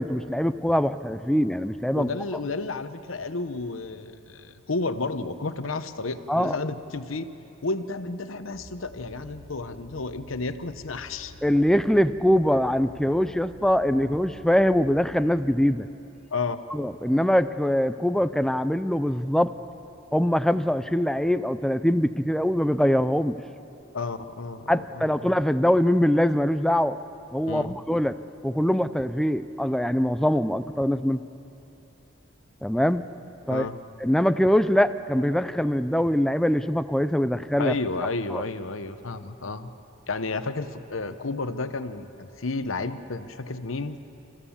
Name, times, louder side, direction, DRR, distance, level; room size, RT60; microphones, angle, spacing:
voice 1, 0.0-2.1 6.3-6.5 11.4-15.9 16.7-19.5 20.1-23.4 24.7-27.0 27.3-28.2 28.4-31.2 32.6-33.0 33.5-33.7 34.0-37.7 38.3-38.4, equal, ahead, 12 dB, 0.4 m, -23 dB
voice 2, 1.9-7.3 7.6-11.3 16.3-16.6 23.9-25.3 27.5-27.7 33.5-33.8 37.6-39.7 40.1-44.0, left 3 dB, 75° left, 10 dB, 0.9 m, -32 dB
sound 1, 8.5-15.4, left 1 dB, 75° right, 6.0 m, -49 dB
29.5 x 15.0 x 7.2 m, 2.9 s
head